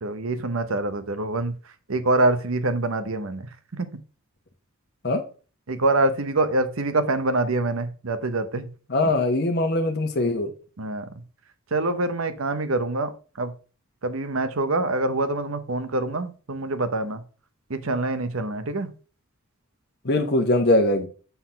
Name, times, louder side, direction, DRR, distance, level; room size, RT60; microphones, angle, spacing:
voice 1, 0.0-1.5 1.9-3.4 5.7-8.6 10.8-11.0 11.7-13.1 13.4-13.5 14.0-17.2 17.7-18.9, right 2 dB, 80° right, 0.9 m, -25 dB
voice 2, 8.9-10.5 20.0-21.1, left 2 dB, 55° left, 1.1 m, -21 dB
7.0 x 3.9 x 5.7 m
head